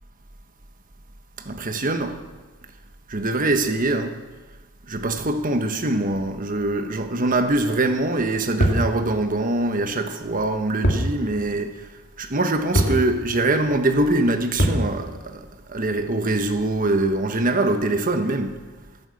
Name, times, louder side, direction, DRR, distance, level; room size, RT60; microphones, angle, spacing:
voice 1, 1.4-2.2 3.1-4.2 4.9-11.9 12.2-18.6, right 2 dB, 40° right, 1.3 m, -23 dB
sound 1, 8.6-8.9 10.8-11.1 11.4-11.5 12.7-13.0 14.6-14.9, equal, 50° left, 2.4 m, -20 dB
14.0 x 12.0 x 7.1 m
head